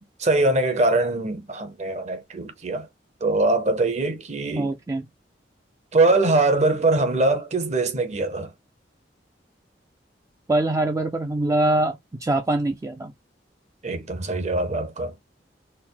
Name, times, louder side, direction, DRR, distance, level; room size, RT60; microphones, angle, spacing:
voice 1, 0.2-2.9 3.2-4.7 5.9-8.5 13.8-15.1, right 2 dB, 40° right, 0.7 m, -22 dB
voice 2, 4.6-5.0 10.5-13.1, right 2 dB, 20° right, 0.3 m, -23 dB
4.3 x 2.1 x 3.8 m
head